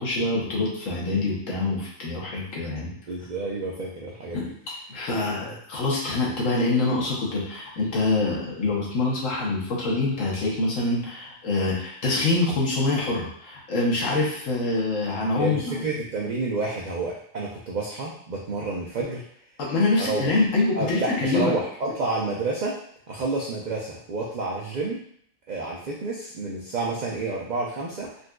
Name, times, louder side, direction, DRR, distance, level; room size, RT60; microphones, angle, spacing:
voice 1, 0.0-2.9 4.3-4.5 4.9-15.6 19.6-21.5, left 2 dB, 75° left, -4 dB, 1.3 m, -25 dB
voice 2, 3.1-4.5 15.4-19.2 20.0-20.3 20.7-22.8 23.1-25.0 25.5-28.1, right 3 dB, 85° right, -4 dB, 0.4 m, -29 dB
4.0 x 2.5 x 2.2 m, 0.65 s
omnidirectional pair, 1.4 m